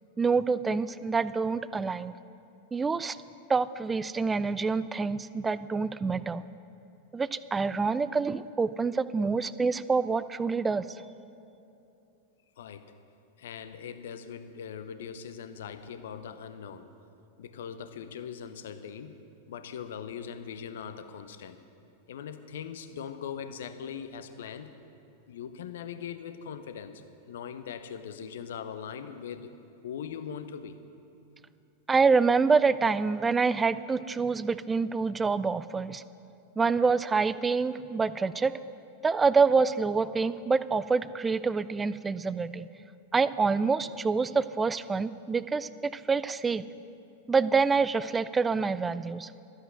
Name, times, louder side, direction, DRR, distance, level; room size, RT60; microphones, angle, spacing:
voice 1, 0.2-2.1 2.7-3.2 3.5-6.4 7.1-10.9 31.9-36.0 36.6-38.5 39.0-42.7 43.1-46.6 47.3-49.3, right 4 dB, 15° right, 16 dB, 0.4 m, -26 dB
voice 2, 12.6-12.9 13.4-16.9 17.4-19.2 19.5-21.6 22.1-24.7 25.3-29.5 29.8-30.8, left 7 dB, 60° left, 10 dB, 0.8 m, -40 dB
13.0 x 8.0 x 7.9 m, 2.8 s
figure-of-eight pair, 90°, 0 cm